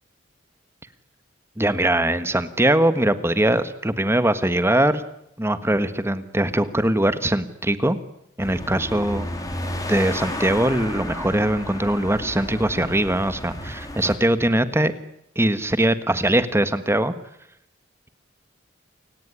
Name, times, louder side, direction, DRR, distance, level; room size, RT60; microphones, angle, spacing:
voice 1, 1.6-5.0 5.4-8.0 8.4-9.3 9.9-14.9 15.3-17.1, right 1 dB, 15° right, 12 dB, 1.5 m, -21 dB
sound 1, 8.4-14.2, left 1 dB, 20° left, 4.7 m, -32 dB
29.0 x 18.5 x 10.0 m, 0.79 s
head